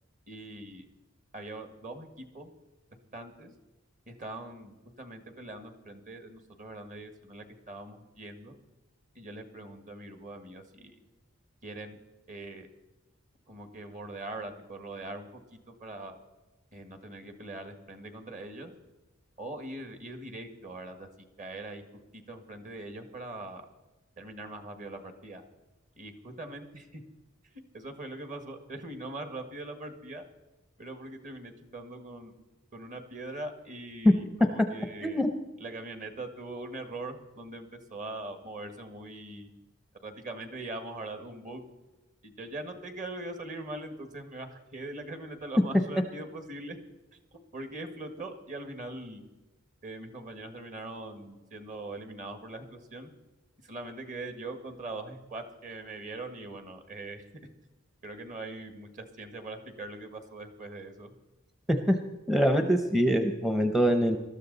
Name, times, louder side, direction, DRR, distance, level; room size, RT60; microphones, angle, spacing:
voice 1, 0.3-0.9 1.3-2.5 3.1-3.5 4.1-8.6 9.1-11.0 11.6-12.0 12.3-12.7 13.5-16.2 16.7-18.7 19.4-21.1 21.4-21.8 22.1-23.7 24.2-25.4 26.0-27.0 27.4-30.2 30.8-32.3 32.7-35.2 35.6-39.5 40.0-41.6 42.2-46.8 47.3-49.2 49.8-53.1 53.6-57.2 58.0-61.1, right 2 dB, 40° right, 7 dB, 1.8 m, -42 dB
voice 2, 62.3-64.2, equal, ahead, 6 dB, 0.7 m, -23 dB
20.0 x 13.0 x 4.0 m, 1.1 s
head